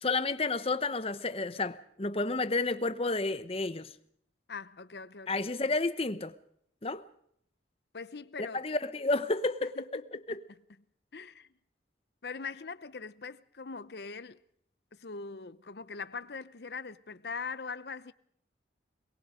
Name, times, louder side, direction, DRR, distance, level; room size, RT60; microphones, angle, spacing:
voice 1, 0.0-3.9 5.3-6.3 6.8-7.1 8.4-10.4, left 3 dB, 30° left, 0.9 m, -31 dB
voice 2, 4.5-5.7 7.9-8.7 9.6-10.4 11.1-11.5 12.2-14.4 14.9-18.1, left 5 dB, 60° left, 0.8 m, -42 dB
23.5 x 22.0 x 5.1 m
head